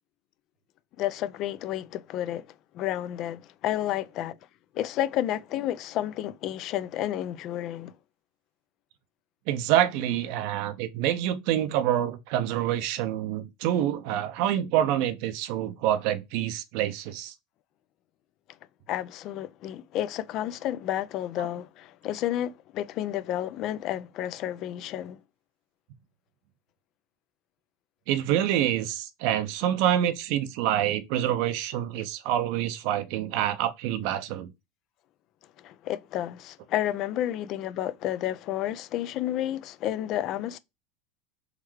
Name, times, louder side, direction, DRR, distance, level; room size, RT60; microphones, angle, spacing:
voice 1, 1.0-2.5 2.7-4.4 4.7-7.9 18.9-25.2 35.6-40.6, left 12 dB, 50° left, 0.4 m, -31 dB
voice 2, 9.5-17.3 28.1-34.5, right 11 dB, 65° right, 0.5 m, -27 dB
3.7 x 3.1 x 3.1 m
supercardioid pair, 105°, 0 cm